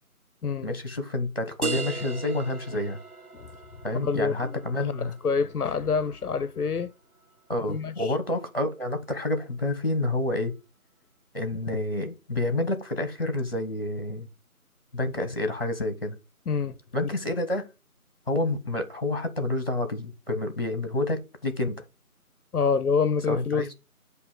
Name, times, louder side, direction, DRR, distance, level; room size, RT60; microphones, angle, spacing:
voice 1, 0.6-3.0 3.8-5.2 7.5-10.5 11.3-14.3 14.9-16.2 16.9-17.7 18.3-21.8 23.3-23.7, left 2 dB, 40° left, 1.3 m, -29 dB
sound 1, 1.6-7.0, right 4 dB, 75° right, 0.9 m, -38 dB
voice 2, 4.0-4.5 4.8-4.9 5.2-6.9 7.7-8.1 16.5-16.7 17.0-17.1 22.5-23.7, left 5 dB, 80° left, 0.6 m, -26 dB
8.0 x 2.8 x 6.0 m
figure-of-eight pair, 170°, 44 cm